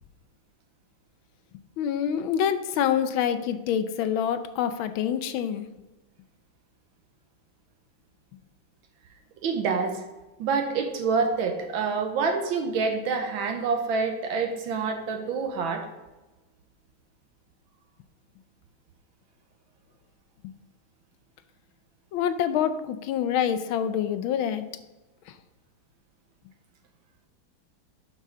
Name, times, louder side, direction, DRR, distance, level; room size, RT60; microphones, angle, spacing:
voice 1, 1.8-5.7 22.1-24.7, left 9 dB, 85° left, 10 dB, 1.5 m, -26 dB
voice 2, 9.4-10.0 10.4-15.9, right 5 dB, 80° right, 4 dB, 1.6 m, -27 dB
11.0 x 5.5 x 3.8 m, 1.1 s
omnidirectional pair, 2.2 m